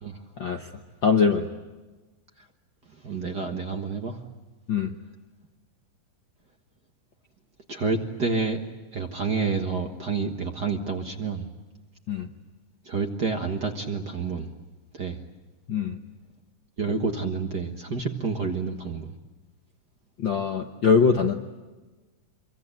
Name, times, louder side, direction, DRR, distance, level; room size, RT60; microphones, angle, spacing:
voice 1, 0.4-0.7 1.0-1.5 4.7-4.9 12.1-12.3 15.7-16.0 20.2-21.3, left 5 dB, 55° left, 4 dB, 1.3 m, -22 dB
voice 2, 3.0-4.2 7.7-8.6 8.9-11.5 12.8-14.5 14.9-15.2 16.8-19.2, right 4 dB, 40° right, 4 dB, 1.6 m, -29 dB
26.0 x 23.5 x 8.9 m, 1.2 s
omnidirectional pair, 3.6 m